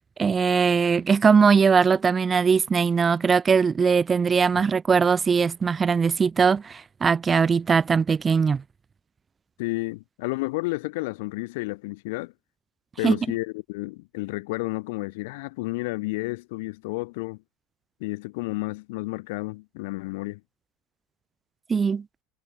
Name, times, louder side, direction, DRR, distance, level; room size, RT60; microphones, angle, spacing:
voice 1, 0.2-8.6 13.0-13.2 21.7-22.0, right 5 dB, 25° right, 1.6 m, -20 dB
voice 2, 9.6-12.3 13.0-17.4 18.0-20.4, left 23 dB, 60° left, 4.9 m, -31 dB
figure-of-eight pair, 75°, 0 cm